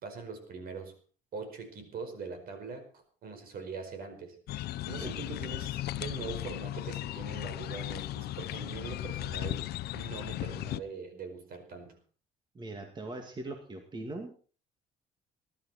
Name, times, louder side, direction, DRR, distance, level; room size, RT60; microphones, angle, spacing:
voice 1, 0.0-0.9 1.3-11.9, right 5 dB, 60° right, 7 dB, 5.0 m, -42 dB
sound 1, 4.5-10.8, left 14 dB, 70° left, 0.7 m, -36 dB
voice 2, 12.5-14.3, right 2 dB, 25° right, 4 dB, 2.2 m, -41 dB
20.5 x 12.0 x 4.4 m, 0.40 s
cardioid pair, 110°, 17 cm